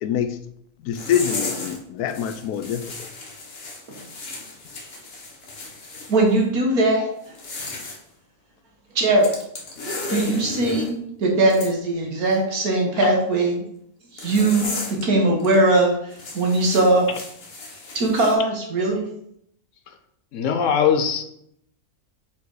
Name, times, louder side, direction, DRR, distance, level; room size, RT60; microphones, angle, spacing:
voice 1, 0.0-0.4 0.8-3.1, left 9 dB, 90° left, 9 dB, 1.1 m, -25 dB
sound 1, 0.9-1.8 2.1-6.1 7.2-8.0 9.2-10.9 11.5-11.7 14.2-15.1 15.4-15.6 16.1-18.3, left 3 dB, 45° left, 1.3 m, -34 dB
voice 2, 6.1-7.3 9.0-9.3 10.1-10.9 11.2-13.6 14.1-17.1 17.9-19.1, right 2 dB, 75° right, 0 dB, 2.0 m, -20 dB
voice 3, 20.3-21.2, left 7 dB, 65° left, 7 dB, 0.9 m, -20 dB
5.2 x 4.7 x 4.8 m, 0.72 s
omnidirectional pair, 1.6 m